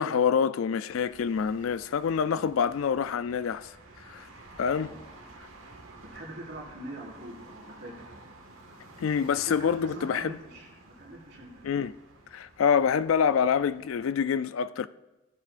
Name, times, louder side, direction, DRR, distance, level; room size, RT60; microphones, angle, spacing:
voice 1, 0.0-3.8 4.0-4.3 4.6-4.9 9.0-10.4 11.6-11.9 12.3-14.9, left 7 dB, 75° left, 0.4 m, -26 dB
sound 1, 0.9-14.2, right 2 dB, 75° right, 1.6 m, -52 dB
voice 2, 6.0-8.1 9.3-11.7, right 1 dB, 55° right, 4.5 m, -43 dB
16.0 x 14.0 x 2.5 m
head